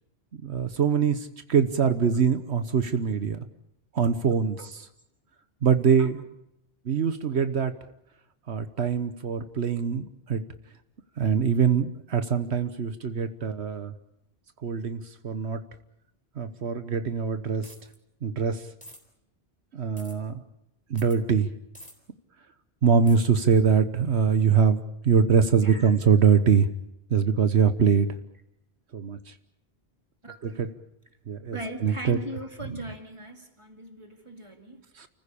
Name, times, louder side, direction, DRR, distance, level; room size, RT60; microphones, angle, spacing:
voice 1, 0.4-3.4 3.9-4.8 5.6-6.2 6.8-7.7 8.5-10.4 11.2-13.9 14.6-15.6 16.4-17.7 18.2-18.7 19.7-20.4 20.9-21.5 22.8-26.7 27.1-28.1 28.9-29.3 30.4-30.7 31.3-31.6 31.8-32.2 35.0-35.1, right 6 dB, 75° right, 11 dB, 1.3 m, -23 dB
sound 1, 17.6-18.0 18.8-19.0 20.0-20.1 21.0-21.2 21.7-21.9 23.1-23.2, equal, 5° left, 3.8 m, -47 dB
voice 2, 25.6-25.9 30.2-30.6 31.5-34.9, right 1 dB, 25° right, 4 dB, 2.5 m, -39 dB
30.0 x 15.0 x 8.6 m, 0.82 s
omnidirectional pair, 1.1 m